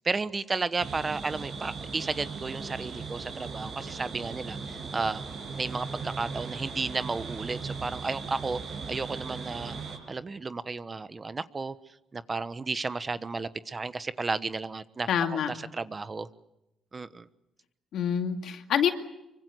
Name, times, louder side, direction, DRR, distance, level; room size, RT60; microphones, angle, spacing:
voice 1, 0.0-5.2 5.5-9.7 10.1-11.7 12.1-16.3 16.9-17.3, right 4 dB, 30° right, 13 dB, 1.1 m, -33 dB
sound 1, 0.8-10.0, right 5 dB, 60° right, 6.4 m, -38 dB
voice 2, 15.1-15.5 17.9-18.9, left 8 dB, 75° left, 6 dB, 2.3 m, -26 dB
24.5 x 24.0 x 7.8 m, 0.91 s
cardioid pair, 90°, 0 cm